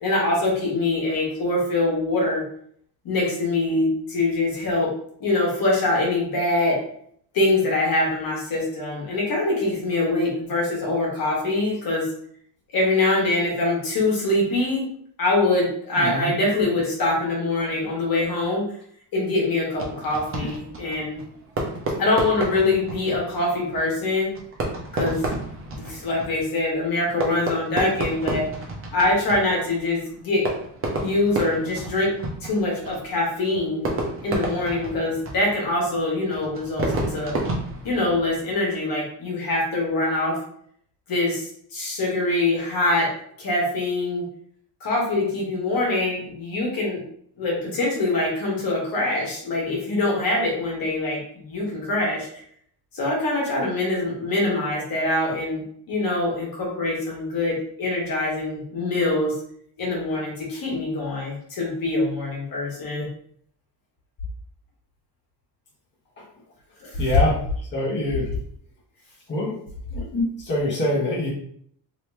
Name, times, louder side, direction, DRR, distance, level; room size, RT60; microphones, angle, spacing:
voice 1, 0.0-2.4 3.0-4.9 5.2-6.8 7.3-12.1 12.7-14.8 15.2-18.6 19.1-21.2 22.0-24.3 24.9-25.2 25.7-28.5 28.9-30.4 30.9-32.1 32.4-33.9 34.2-37.3 37.8-40.4 41.1-43.1 43.4-44.2 44.8-47.0 47.4-52.4 52.9-59.3 59.8-63.1 66.8-67.2, left 2 dB, 55° left, -2 dB, 1.4 m, -24 dB
voice 2, 16.0-16.3 67.0-67.4 67.7-68.3 69.3-69.5 69.9-71.3, left 1 dB, 25° left, -6 dB, 1.1 m, -24 dB
Fireworks, 19.7-38.5, right 2 dB, 30° right, 0.8 m, -32 dB
3.0 x 2.8 x 3.3 m, 0.64 s
cardioid pair, 140°, 42 cm